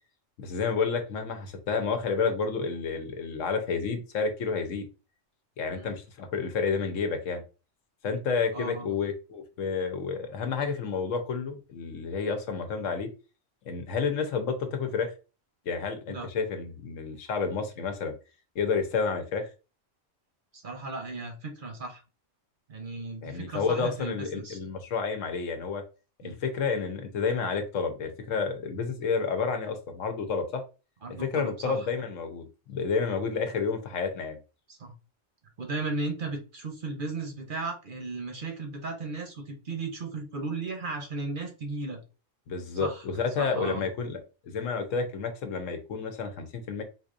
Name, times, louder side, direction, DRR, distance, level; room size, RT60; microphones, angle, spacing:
voice 1, 0.4-4.9 5.6-7.4 8.0-13.1 13.6-15.1 15.7-18.1 18.5-19.5 23.2-25.8 26.2-30.6 31.1-34.4 42.5-44.2 44.5-46.8, left 5 dB, 75° left, 7 dB, 1.1 m, -30 dB
voice 2, 8.5-9.0 16.1-16.3 20.5-22.0 22.7-24.6 26.2-26.4 31.0-31.9 34.7-34.9 35.6-42.0 42.7-43.8, right 3 dB, 50° right, 3 dB, 0.8 m, -36 dB
3.9 x 2.7 x 2.5 m, 0.32 s
omnidirectional pair, 1.3 m